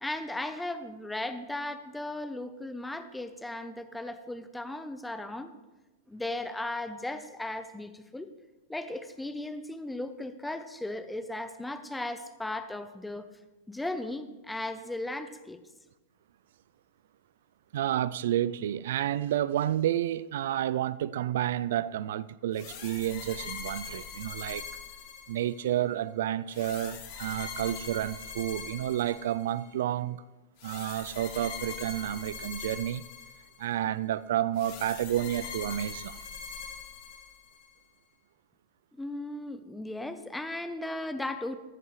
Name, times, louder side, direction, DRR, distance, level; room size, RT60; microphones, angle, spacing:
voice 1, 0.0-5.5 6.1-8.3 8.7-13.3 13.7-15.6 39.0-41.6, left 1 dB, 5° left, 0.8 m, -36 dB
voice 2, 17.7-24.7 25.3-30.2 30.6-33.0 33.6-36.2, right 12 dB, 70° right, 0.4 m, -30 dB
sound 1, 22.5-25.7 26.5-29.6 30.6-33.7 34.6-37.7, left 6 dB, 55° left, 2.4 m, -42 dB
14.5 x 10.5 x 3.3 m
hypercardioid pair, 115°, 0 cm